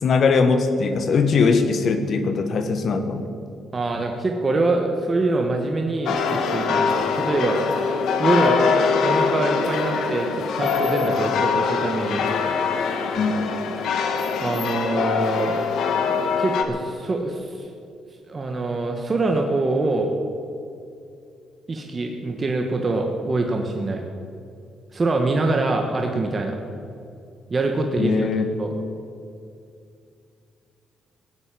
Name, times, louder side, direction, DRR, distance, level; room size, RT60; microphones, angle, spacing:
voice 1, 0.0-3.3 13.2-13.3 28.0-28.4, left 4 dB, 55° left, 8 dB, 1.6 m, -20 dB
voice 2, 3.7-7.6 8.1-8.6 9.0-12.2 14.4-15.6 16.4-17.7 18.3-20.1 21.7-24.0 24.9-26.6 27.5-28.3 28.6-28.7, right 2 dB, 30° right, 2 dB, 1.6 m, -24 dB
sound 1, 6.1-16.6, left 5 dB, 75° left, 1.6 m, -23 dB
16.5 x 8.1 x 9.3 m, 2.4 s
cardioid pair, 90°, 0 cm